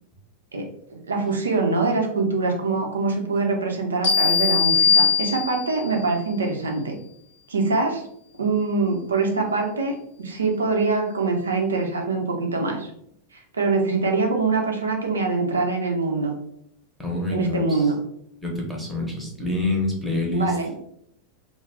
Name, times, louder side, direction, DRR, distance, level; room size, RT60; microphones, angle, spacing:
voice 1, 0.5-7.0 7.5-8.0 8.4-12.9 13.3-16.3 17.3-18.0 20.3-20.7, right 3 dB, 70° right, 2 dB, 0.5 m, -24 dB
sound 1, 4.0-5.9, left 6 dB, 50° left, 0.8 m, -20 dB
voice 2, 17.0-17.9 18.4-20.5, left 2 dB, ahead, -2 dB, 0.8 m, -26 dB
2.4 x 2.1 x 3.4 m, 0.71 s
figure-of-eight pair, 90°, 0 cm